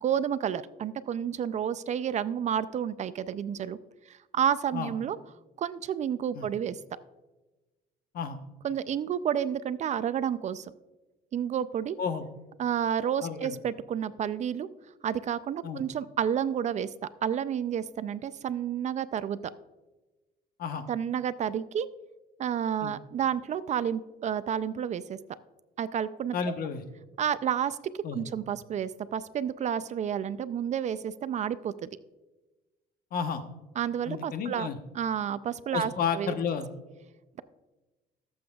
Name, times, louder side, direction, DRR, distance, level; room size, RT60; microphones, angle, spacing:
voice 1, 0.0-3.8 4.1-5.2 5.6-6.8 8.6-10.7 11.3-12.0 12.6-14.7 15.0-16.9 17.2-19.4 20.9-21.9 22.4-25.2 25.8-26.4 27.2-31.9 33.8-34.7 34.9-36.3, right 9 dB, 45° right, 15 dB, 0.4 m, -30 dB
voice 2, 13.2-13.6 15.6-15.8 20.6-20.8 22.8-22.9 26.3-26.8 28.0-28.3 33.1-33.4 34.1-34.8 35.7-36.7, left 6 dB, 60° left, 8 dB, 1.0 m, -31 dB
17.5 x 7.8 x 2.3 m, 1.1 s
cardioid pair, 110°, 17 cm